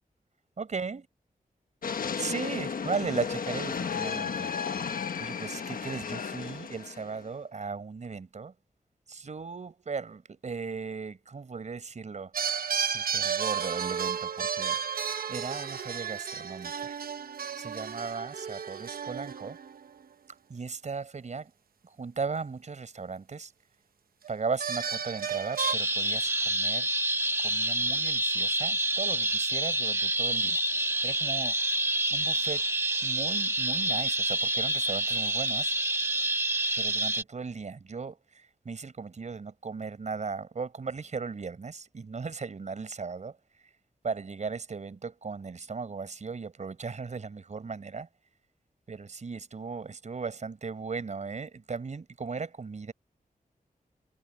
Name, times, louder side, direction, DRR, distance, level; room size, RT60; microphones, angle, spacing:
voice 1, 0.6-1.0 2.2-4.5 5.2-8.5 9.1-12.3 12.9-14.8 15.3-17.0 17.5-19.6 20.5-21.5 21.8-23.5 24.3-26.9 27.4-30.6 31.0-31.6 32.1-32.7 33.0-35.7 36.8-43.4 44.0-48.1 48.9-52.9, right 5 dB, 55° right, 5.1 m, -37 dB
sound 1, 1.8-7.3, left 6 dB, 75° left, 1.2 m, -34 dB
sound 2, 12.3-20.0 24.3-25.8, right 7 dB, 90° right, 1.0 m, -33 dB
sound 3, 25.6-37.2, right 1 dB, 15° right, 1.3 m, -28 dB
wide cardioid pair, 150°, 15 cm